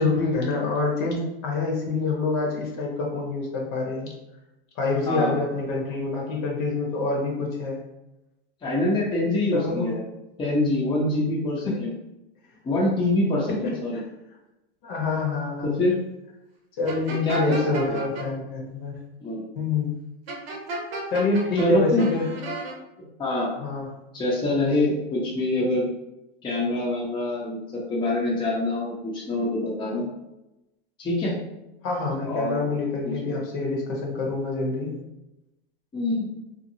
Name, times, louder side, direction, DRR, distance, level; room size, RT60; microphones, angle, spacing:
voice 1, 0.0-4.1 4.8-7.8 9.5-9.9 11.7-11.9 13.5-14.0 14.8-15.8 16.8-19.0 19.5-19.9 21.1-22.3 23.6-23.9 31.8-34.9, left 3 dB, 60° left, -1 dB, 1.0 m, -26 dB
voice 2, 8.6-10.0 10.4-11.9 12.6-14.0 15.6-16.0 17.2-17.6 17.9-18.0 19.2-19.4 21.5-22.1 23.2-23.5 24.1-25.9 26.4-30.1 31.0-31.3 32.2-32.6 33.0-33.3 35.9-36.3, left 1 dB, 15° left, -5 dB, 0.6 m, -25 dB
sound 1, 16.9-18.2 20.3-21.7 22.0-22.7, right 2 dB, 90° right, 0.7 m, -33 dB
2.7 x 2.5 x 2.7 m, 0.95 s
supercardioid pair, 125°, 29 cm